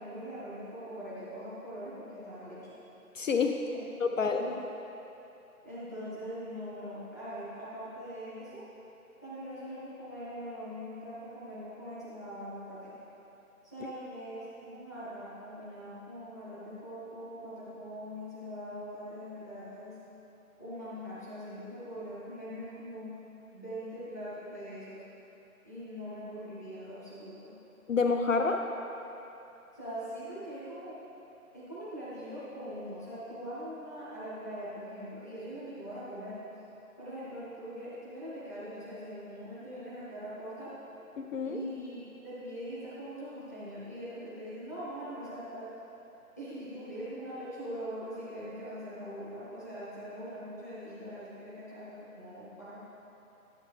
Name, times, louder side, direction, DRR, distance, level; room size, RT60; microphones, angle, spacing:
voice 1, 0.0-2.7 3.7-4.6 5.6-8.6 9.2-12.9 13.6-20.0 20.6-23.1 23.5-25.0 25.6-27.6 29.7-31.0 31.5-36.4 37.0-40.7 41.4-45.7 46.4-52.8, equal, 10° left, -11 dB, 0.7 m, -42 dB
voice 2, 3.1-3.6 4.0-4.5 13.8-13.9 27.9-28.7 41.2-41.6, left 4 dB, 60° left, 4 dB, 0.6 m, -28 dB
11.0 x 7.0 x 3.1 m, 3.0 s
hypercardioid pair, 165°, 44 cm